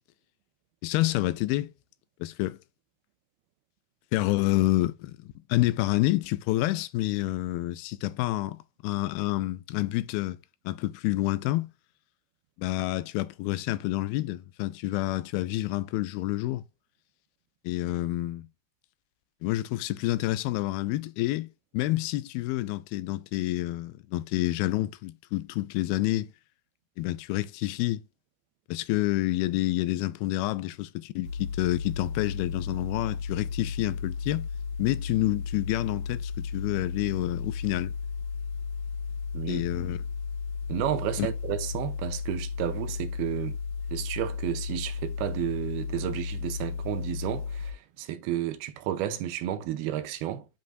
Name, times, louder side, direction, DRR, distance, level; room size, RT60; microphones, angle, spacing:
voice 1, 0.8-1.7 2.2-2.6 4.1-10.4 10.7-11.7 12.6-16.6 17.6-18.5 19.4-21.5 21.7-26.3 27.0-28.0 28.7-34.5 34.8-37.9 39.5-40.0 41.2-41.3, left 17 dB, 85° left, 2.3 m, -28 dB
sound 1, 31.2-47.7, left 5 dB, 60° left, 2.9 m, -34 dB
voice 2, 39.3-39.7 40.7-43.6 43.9-50.5, right 12 dB, 90° right, 2.7 m, -32 dB
10.5 x 5.3 x 2.6 m
omnidirectional pair, 4.4 m